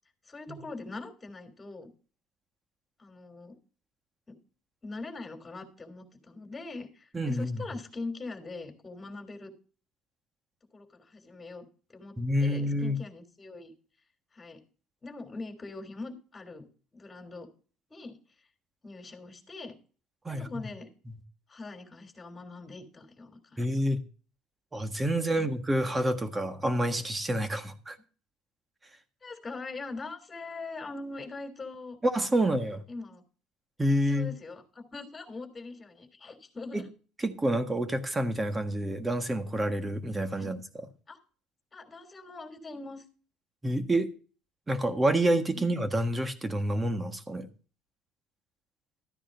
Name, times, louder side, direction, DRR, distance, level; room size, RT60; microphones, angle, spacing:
voice 1, 0.3-1.9 3.0-3.5 4.3-4.4 4.8-9.5 10.7-11.6 11.9-13.7 14.3-14.6 15.0-16.7 16.9-17.5 17.9-18.2 18.8-19.7 20.3-20.9 21.5-23.8 25.3-25.5 29.2-32.0 32.4-33.2 34.1-36.9 40.3-40.5 41.1-41.2 41.7-43.0 45.5-45.7, left 3 dB, 25° left, 3.2 m, -42 dB
voice 2, 7.1-7.7 12.2-13.0 20.2-20.5 23.6-24.0 24.7-28.0 32.0-32.8 33.8-34.3 36.7-36.8 37.2-40.9 43.6-44.1 44.7-47.5, right 1 dB, 20° right, 1.5 m, -28 dB
13.5 x 9.9 x 2.6 m
supercardioid pair, 80°, 0 cm